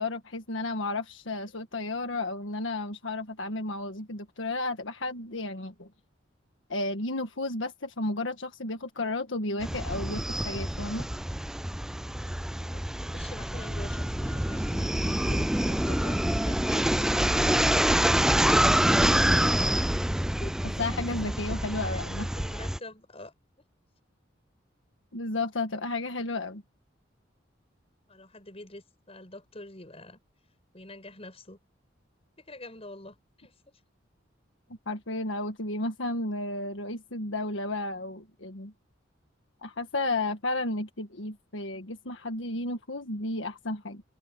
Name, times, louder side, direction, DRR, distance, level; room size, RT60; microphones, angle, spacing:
voice 1, 0.0-5.9 6.7-11.1 20.8-22.3 25.1-26.6 34.9-38.7 39.6-44.0, left 2 dB, 80° left, 1.6 m, -33 dB
sound 1, 9.6-22.8, right 1 dB, 5° right, 0.4 m, -26 dB
voice 2, 12.6-17.8 19.4-19.9 20.1-20.6 21.8-23.3 28.1-30.2 30.7-31.6 32.4-33.5, left 1 dB, 30° left, 7.7 m, -46 dB
open air
head